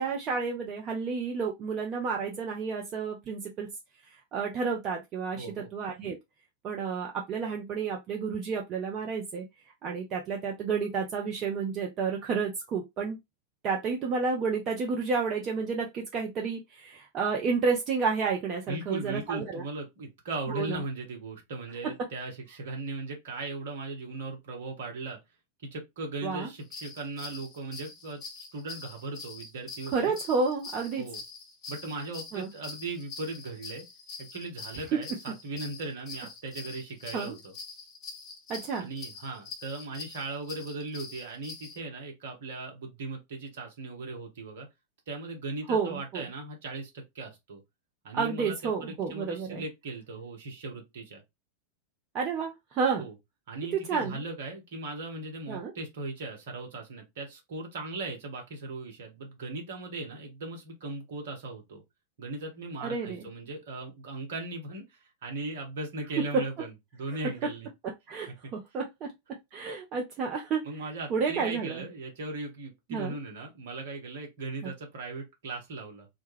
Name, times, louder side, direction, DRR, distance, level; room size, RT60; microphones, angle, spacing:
voice 1, 0.0-3.7 4.3-6.2 6.6-9.5 9.8-13.2 13.6-19.6 20.5-20.8 26.2-26.5 29.9-31.0 32.3-32.5 34.9-35.0 37.1-37.4 38.5-38.9 45.7-46.2 48.1-49.6 52.1-53.1 53.7-54.2 55.5-55.7 62.8-63.3 66.3-66.4 68.1-69.1 69.5-70.7 71.1-71.8 72.9-73.2 74.6-74.7, right 5 dB, 35° right, 0.5 m, -30 dB
voice 2, 5.4-5.7 18.7-25.2 25.6-30.1 31.0-31.2 31.7-33.8 34.2-37.5 38.8-44.7 45.1-47.6 48.0-51.2 53.0-53.1 53.5-61.8 62.2-67.7 70.6-76.1, right 2 dB, 55° right, 0.9 m, -38 dB
sound 1, 26.6-41.8, left 4 dB, 30° left, 0.6 m, -45 dB
2.2 x 2.1 x 3.2 m
figure-of-eight pair, 90°, 0 cm